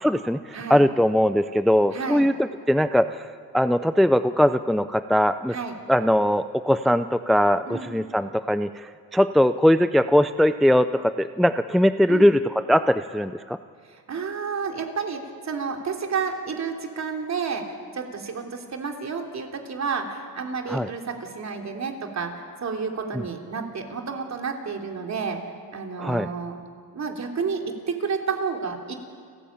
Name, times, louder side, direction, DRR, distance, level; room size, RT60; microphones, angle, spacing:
voice 1, 0.0-3.3 3.5-5.6 5.9-12.4 12.7-13.6 20.7-20.9 23.1-23.2 26.0-26.3, equal, ahead, 11 dB, 0.4 m, -21 dB
voice 2, 1.9-2.3 5.5-5.8 7.7-8.0 12.1-12.4 13.9-17.7 17.9-25.4 25.7-26.6 26.9-28.9, right 5 dB, 45° right, 2 dB, 3.2 m, -30 dB
30.0 x 13.0 x 8.7 m, 2.2 s
cardioid pair, 95°, 37 cm